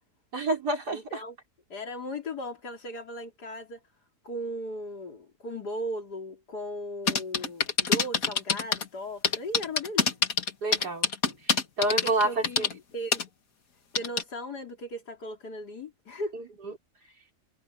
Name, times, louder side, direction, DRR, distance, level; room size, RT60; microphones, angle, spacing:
voice 1, 0.3-1.2 10.6-11.1 11.8-12.7 16.3-16.7, right 2 dB, 80° right, 4.7 m, -28 dB
voice 2, 0.9-1.4 1.7-3.8 4.2-10.1 12.0-13.2 13.9-16.4, equal, 80° left, 3.9 m, -37 dB
sound 1, 7.1-8.8 9.2-12.7 13.1-13.2 14.0-14.2, left 5 dB, 60° left, 2.2 m, -25 dB
omnidirectional pair, 1.7 m